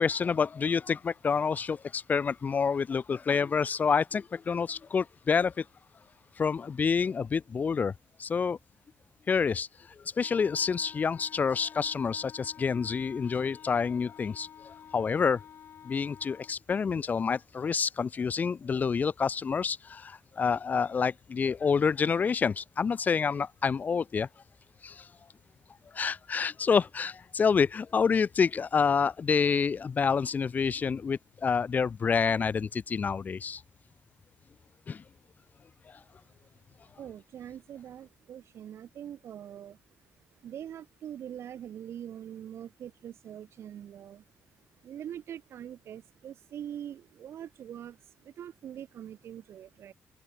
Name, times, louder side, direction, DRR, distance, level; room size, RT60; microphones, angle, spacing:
voice 1, 0.0-5.6 6.4-7.9 8.2-8.6 9.3-9.7 10.2-15.4 15.8-24.3 24.8-25.1 25.9-33.6 34.9-35.0, left 6 dB, 35° left, 0.7 m, -28 dB
Wind instrument woodwind instrument, 10.2-16.6, left 9 dB, 60° left, 3.7 m, -50 dB
voice 2, 37.0-39.8 40.4-44.2 44.8-49.9, right 10 dB, 70° right, 4.0 m, -43 dB
cardioid pair, 115°, 5 cm